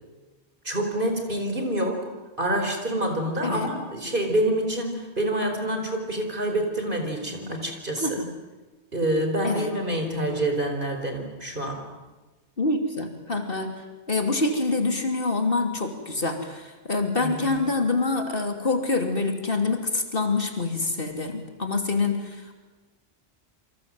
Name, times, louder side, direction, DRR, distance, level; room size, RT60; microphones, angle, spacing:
voice 1, 0.6-2.0 2.4-8.2 8.9-11.8 17.2-17.5, right 1 dB, 50° right, 4 dB, 4.9 m, -27 dB
voice 2, 8.0-8.3 9.4-9.7 12.6-13.8 14.1-22.5, left 3 dB, 55° left, 4 dB, 3.2 m, -26 dB
28.5 x 25.5 x 7.8 m, 1.2 s
omnidirectional pair, 1.2 m